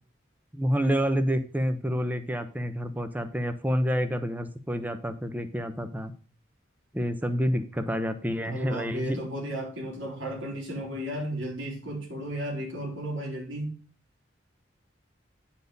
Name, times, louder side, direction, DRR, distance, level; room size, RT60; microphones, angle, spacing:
voice 1, 0.5-6.1 6.9-9.2, equal, 10° right, 0.8 m, -28 dB
voice 2, 8.5-13.8, right 1 dB, 90° right, 3.6 m, -34 dB
9.5 x 4.6 x 5.3 m
head